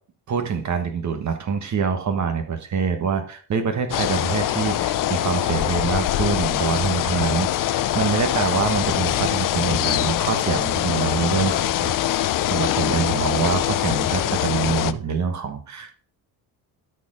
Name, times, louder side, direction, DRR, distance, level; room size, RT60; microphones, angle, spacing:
voice 1, 0.3-15.9, right 6 dB, 45° right, 7 dB, 1.3 m, -25 dB
sound 1, 3.9-14.9, left 13 dB, 55° left, 0.6 m, -23 dB
12.5 x 4.5 x 4.9 m, 0.43 s
cardioid pair, 125°, 40 cm